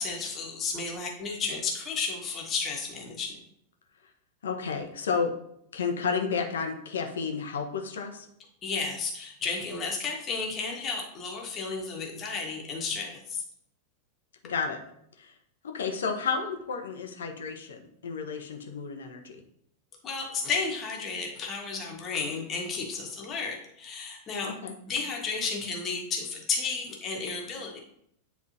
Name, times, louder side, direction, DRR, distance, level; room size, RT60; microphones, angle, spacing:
voice 1, 0.0-3.3 8.6-13.4 20.0-24.5 24.8-27.8, left 4 dB, 30° left, -1 dB, 1.6 m, -32 dB
voice 2, 4.4-5.3 5.7-8.3 14.4-14.8 15.2-15.3 15.6-19.4 24.4-24.7, left 5 dB, 65° left, 3 dB, 1.0 m, -31 dB
9.9 x 3.5 x 2.9 m, 0.72 s
figure-of-eight pair, 90°, 0 cm